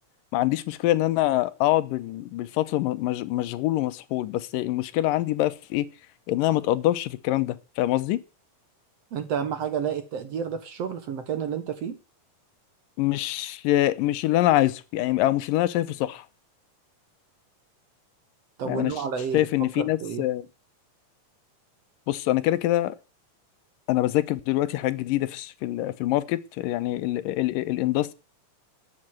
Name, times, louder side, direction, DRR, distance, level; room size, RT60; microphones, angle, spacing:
voice 1, 0.3-5.9 6.3-8.2 13.0-16.2 18.7-18.9 19.3-20.5 22.1-23.0 23.9-28.1, left 15 dB, 85° left, 2.5 m, -25 dB
voice 2, 9.1-12.0 18.6-19.5 19.8-20.3, right 7 dB, 60° right, 2.1 m, -30 dB
13.0 x 7.9 x 7.7 m
omnidirectional pair, 3.8 m